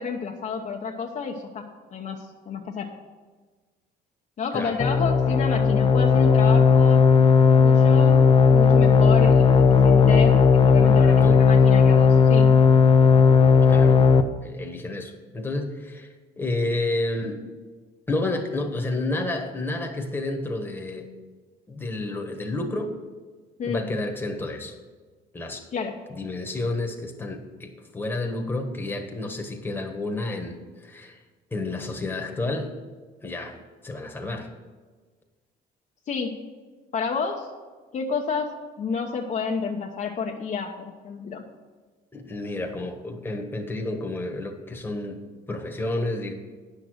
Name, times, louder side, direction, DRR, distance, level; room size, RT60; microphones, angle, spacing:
voice 1, 0.0-2.9 4.4-7.0 7.6-8.2 8.5-12.5 23.6-23.9 25.7-26.0 36.1-36.4 36.9-37.5 37.9-41.5, left 5 dB, 45° left, 1 dB, 0.9 m, -30 dB
sound 1, 4.8-14.2, left 5 dB, 30° left, 0.6 m, -16 dB
voice 2, 10.8-11.4 13.7-14.1 14.4-17.4 18.1-21.1 21.7-22.9 23.6-24.7 25.3-25.7 26.1-31.2 31.5-32.7 33.2-33.6 33.8-34.5 42.1-45.2 45.5-46.3, left 2 dB, 10° left, 3 dB, 1.4 m, -30 dB
9.6 x 6.6 x 6.3 m, 1.4 s
cardioid pair, 110°, 17 cm